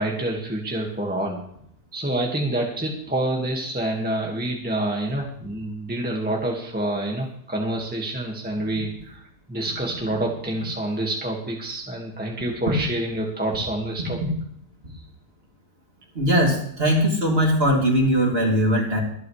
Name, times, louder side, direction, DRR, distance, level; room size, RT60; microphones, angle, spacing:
voice 1, 0.0-1.4 1.9-9.2 9.5-14.2, right 1 dB, 5° right, 0 dB, 1.5 m, -27 dB
voice 2, 16.1-19.0, equal, 35° right, -1 dB, 3.0 m, -20 dB
24.0 x 8.6 x 3.2 m, 0.67 s
omnidirectional pair, 1.8 m